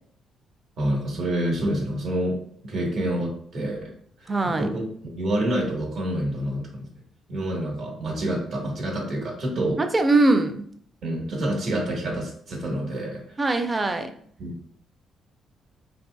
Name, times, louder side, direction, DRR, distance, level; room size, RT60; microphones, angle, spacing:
voice 1, 0.8-2.4 2.6-3.9 4.2-4.8 5.1-6.9 7.3-9.8 11.0-13.4 14.4-14.5, right 1 dB, 70° right, -1 dB, 1.1 m, -27 dB
voice 2, 4.3-4.7 9.8-10.6 13.4-14.1, right 2 dB, 25° right, 7 dB, 0.4 m, -21 dB
3.7 x 2.6 x 2.3 m, 0.62 s
cardioid pair, 90°, 0 cm